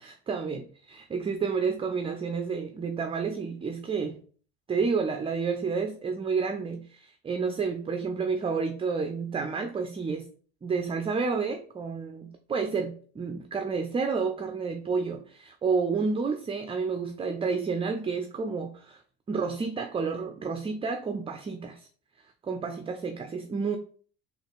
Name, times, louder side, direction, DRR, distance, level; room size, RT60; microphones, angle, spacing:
voice 1, 0.0-4.2 4.7-10.3 10.6-19.0 19.3-21.9 22.4-23.8, right 5 dB, 20° right, 0.4 m, -30 dB
3.9 x 2.4 x 3.5 m
supercardioid pair, 85°, 32 cm